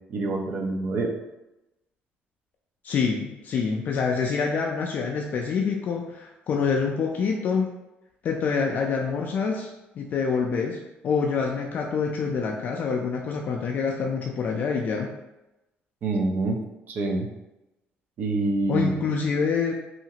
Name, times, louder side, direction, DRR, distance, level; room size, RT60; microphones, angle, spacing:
voice 1, 0.1-1.1 16.0-16.6 16.9-17.3 18.2-18.9, right 2 dB, 50° right, 1 dB, 0.5 m, -26 dB
voice 2, 2.8-7.7 8.2-9.7 10.0-15.1 18.7-19.7, left 5 dB, 45° left, 1 dB, 0.3 m, -26 dB
2.7 x 2.4 x 2.8 m, 0.95 s
cardioid pair, 150°, 4 cm